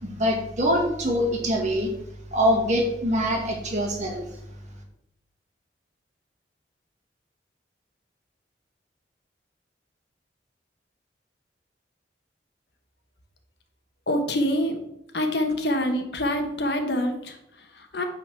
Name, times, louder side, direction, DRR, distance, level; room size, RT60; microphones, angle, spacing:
voice 1, 0.0-1.9 2.3-4.3, equal, 40° right, 1 dB, 1.9 m, -24 dB
voice 2, 14.1-14.8 15.1-18.0, left 1 dB, 65° left, 5 dB, 1.3 m, -26 dB
8.9 x 4.1 x 6.2 m, 0.79 s
head